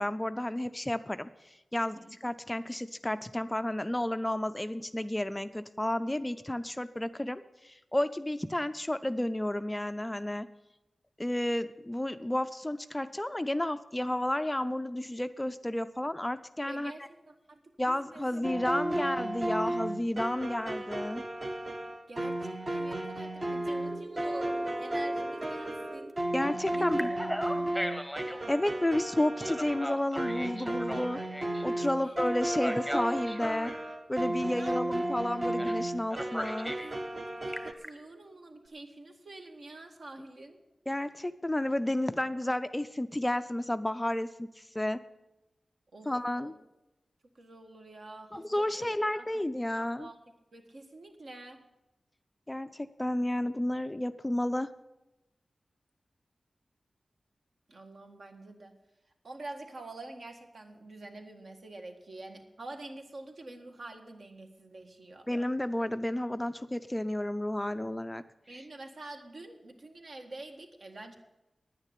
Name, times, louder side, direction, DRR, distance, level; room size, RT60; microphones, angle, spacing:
voice 1, 0.0-10.5 11.2-16.9 17.8-21.2 26.3-27.1 28.5-31.2 31.6-33.7 34.1-36.7 40.9-45.0 46.1-46.5 48.3-50.1 52.5-54.7 65.3-68.2, left 1 dB, 10° left, 11 dB, 0.4 m, -31 dB
voice 2, 1.8-2.2 16.7-17.6 17.9-18.3 18.7-19.0 22.1-26.1 26.7-27.7 31.8-32.2 34.5-34.8 36.8-40.6 45.9-46.1 46.4-46.5 47.3-49.3 49.7-50.2 50.5-51.6 57.7-58.8 59.2-65.3 68.5-71.2, right 2 dB, 60° right, 4 dB, 1.7 m, -47 dB
sound 1, 18.4-37.7, right 1 dB, 30° right, 0.8 m, -34 dB
Telephone, 23.9-26.1 26.7-28.4 29.4-31.6 32.5-33.8 35.6-35.8 36.1-36.9 37.3-37.9, equal, 5° right, 1.0 m, -39 dB
9.9 x 9.7 x 8.4 m, 0.96 s
wide cardioid pair, 120°, 0 cm